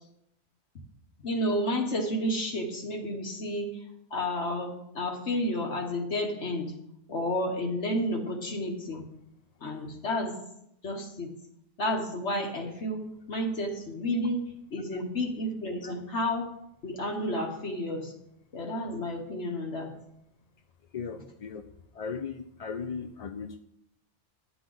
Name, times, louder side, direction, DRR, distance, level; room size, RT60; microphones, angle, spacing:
voice 1, 1.2-3.8 4.1-6.8 7.1-9.0 9.6-10.3 10.8-11.3 11.8-16.5 16.8-18.1 18.5-20.0, left 1 dB, 75° left, 1 dB, 1.5 m, -31 dB
voice 2, 20.9-21.7 21.9-23.6, left 5 dB, 55° left, 6 dB, 0.4 m, -37 dB
11.0 x 8.3 x 3.9 m, 0.79 s
omnidirectional pair, 1.2 m